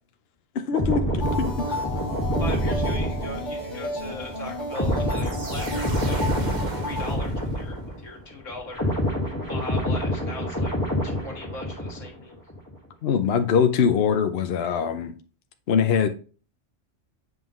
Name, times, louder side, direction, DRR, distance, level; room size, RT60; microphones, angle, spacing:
voice 1, 0.5-1.8 13.0-15.1 15.7-16.1, left 7 dB, 60° left, 0.9 m, -23 dB
sound 1, 0.7-8.2 8.5-12.2 12.5-12.7, equal, 15° left, 1.9 m, -27 dB
sound 2, 1.2-7.1, equal, 20° right, 2.6 m, -33 dB
voice 2, 2.4-6.2 6.8-8.9 9.5-10.7 11.0-12.4, left 2 dB, 85° left, 2.1 m, -39 dB
sound 3, 5.1-7.9, right 3 dB, 40° right, 1.2 m, -38 dB
7.9 x 5.4 x 3.1 m
omnidirectional pair, 1.3 m